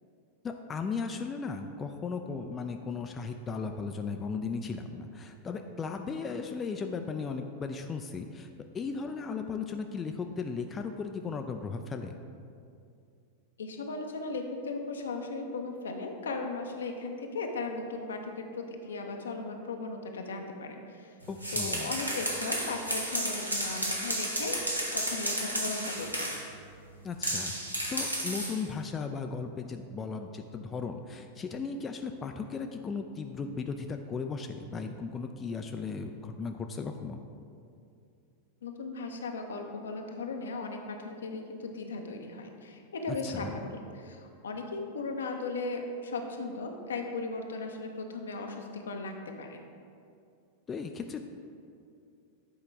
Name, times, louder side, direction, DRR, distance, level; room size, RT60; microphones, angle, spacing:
voice 1, 0.4-8.5 8.7-12.1 21.3-21.9 27.0-27.6 27.9-37.2 43.1-43.5 50.7-51.2, left 5 dB, 20° left, 5 dB, 0.3 m, -36 dB
voice 2, 13.6-21.2 21.5-24.6 24.9-26.3 38.6-49.6, left 3 dB, 65° left, 4 dB, 0.6 m, -37 dB
sound 1, 21.2-26.5 27.2-28.6, equal, 90° right, 1.0 m, -32 dB
8.1 x 4.7 x 3.4 m, 2.4 s
figure-of-eight pair, 90°, 0 cm